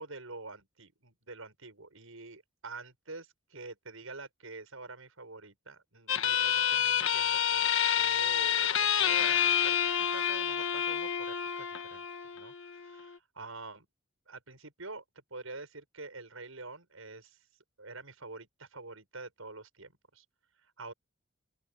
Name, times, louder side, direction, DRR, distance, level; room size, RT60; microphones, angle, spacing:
voice 1, 0.0-7.7 8.0-12.0 12.4-13.9 14.3-15.0 15.3-17.4 17.8-20.3 20.8-20.9, right 3 dB, 85° right, 7.3 m, -46 dB
sound 1, 6.1-13.1, left 9 dB, 70° left, 1.6 m, -28 dB
open air
head